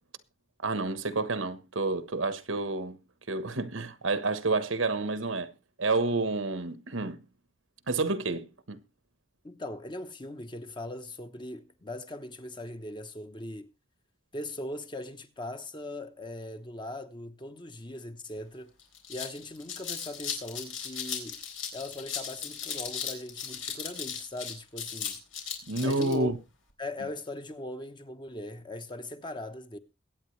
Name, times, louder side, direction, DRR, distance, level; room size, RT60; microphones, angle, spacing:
voice 1, 0.6-3.0 3.3-5.5 5.8-7.2 7.9-8.8 25.7-26.4, right 3 dB, 85° right, 1.2 m, -29 dB
voice 2, 9.4-13.7 14.3-18.7 19.1-21.4 21.7-25.2 25.8-26.3 26.8-29.8, left 1 dB, 25° left, 1.0 m, -40 dB
sound 1, 18.4-18.5 18.8-26.2, left 7 dB, 85° left, 3.9 m, -37 dB
22.5 x 9.1 x 3.2 m
head